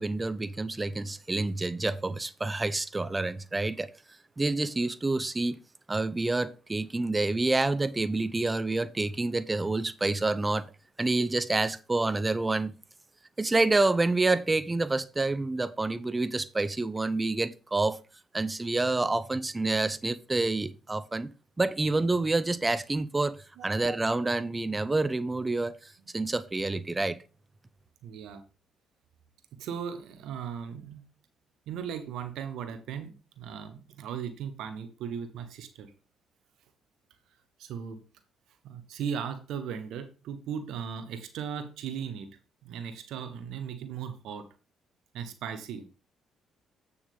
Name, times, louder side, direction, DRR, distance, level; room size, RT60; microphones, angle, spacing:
voice 1, 0.0-3.9 4.4-5.6 5.9-10.7 11.0-12.7 13.4-18.0 18.3-21.3 21.6-23.4 23.6-27.2, right 2 dB, 25° right, 0.7 m, -28 dB
voice 2, 23.6-23.9 28.0-28.4 29.6-31.0 31.7-35.9 37.6-38.0 38.6-42.3 42.6-44.5 45.1-45.8, right 7 dB, 75° right, 1.1 m, -37 dB
8.5 x 7.0 x 3.5 m
hypercardioid pair, 55°, 0 cm